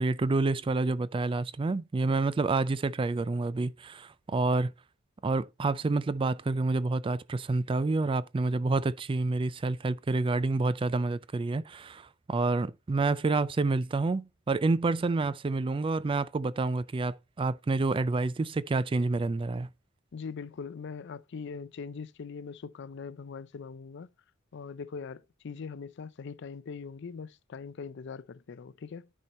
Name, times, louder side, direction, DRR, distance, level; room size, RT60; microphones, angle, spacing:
voice 1, 0.0-4.7 5.2-19.7, right 3 dB, 25° right, 0.3 m, -28 dB
voice 2, 20.1-24.1 24.5-29.1, left 5 dB, 60° left, 0.4 m, -41 dB
9.9 x 4.4 x 4.1 m
head